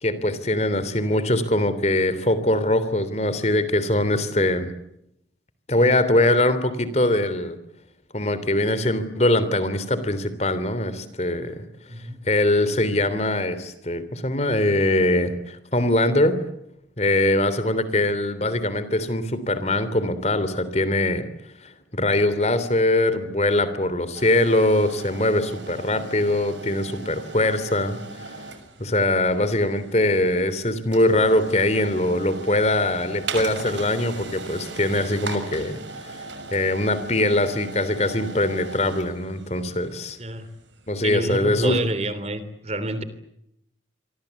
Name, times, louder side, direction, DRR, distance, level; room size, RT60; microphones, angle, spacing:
voice 1, 0.0-4.7 5.7-7.6 8.1-11.6 12.3-16.4 17.0-21.2 21.9-28.0 28.2-28.3 28.8-35.8 36.5-40.2 40.9-41.8, left 1 dB, 35° left, 13 dB, 3.2 m, -22 dB
voice 2, 11.9-12.2 40.2-40.5 41.0-43.0, right 1 dB, 35° right, 13 dB, 3.2 m, -28 dB
sound 1, 24.1-41.0, right 3 dB, 80° right, 6.4 m, -39 dB
28.0 x 24.0 x 8.4 m, 0.79 s
head